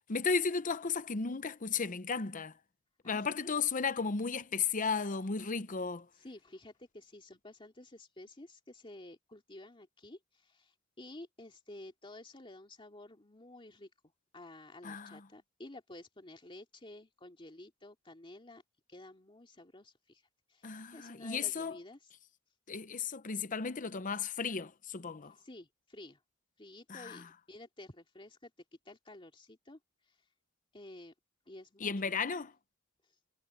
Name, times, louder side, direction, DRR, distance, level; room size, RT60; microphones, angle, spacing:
voice 1, 0.1-2.6 3.0-6.1 14.8-15.3 20.6-21.8 22.7-25.3 26.9-27.2 31.8-32.5, left 5 dB, 40° left, 0.8 m, -34 dB
voice 2, 3.0-3.5 6.2-13.9 14.3-18.6 18.9-20.2 20.5-22.0 25.3-26.2 26.6-28.5 28.8-29.8 30.1-30.2 30.7-31.1 31.5-32.1, left 1 dB, 25° left, 2.6 m, -52 dB
head